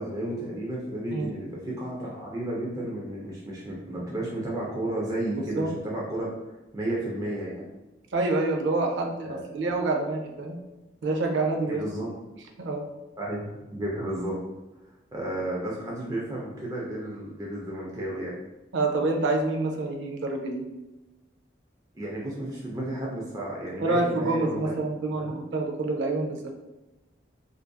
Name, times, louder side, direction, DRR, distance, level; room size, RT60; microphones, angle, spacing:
voice 1, 0.0-7.6 9.2-9.5 11.7-12.1 13.2-14.4 15.1-18.4 21.9-24.8 25.3-25.4, right 1 dB, 20° right, -4 dB, 0.4 m, -33 dB
voice 2, 5.3-5.7 8.1-10.6 11.0-11.8 12.6-12.8 18.7-20.7 23.8-26.5, right 2 dB, 80° right, 2 dB, 0.4 m, -27 dB
2.5 x 2.4 x 2.2 m, 1.0 s
head